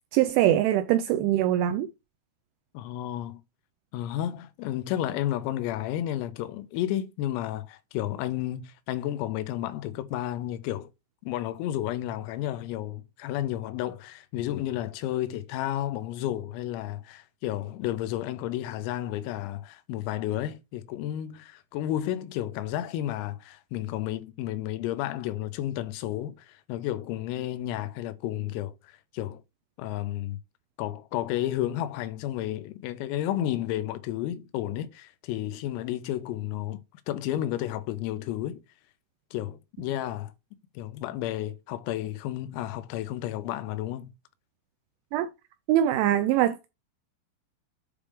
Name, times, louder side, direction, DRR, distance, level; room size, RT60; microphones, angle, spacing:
voice 1, 0.1-1.9 45.1-45.3 45.7-46.7, right 12 dB, 85° right, 2.7 m, -23 dB
voice 2, 2.8-3.4 3.9-10.9 11.2-29.4 29.8-30.4 30.8-36.8 37.1-38.6 39.3-40.3 40.8-44.1, left 13 dB, 90° left, 3.5 m, -32 dB
8.6 x 3.5 x 4.9 m
omnidirectional pair, 5.9 m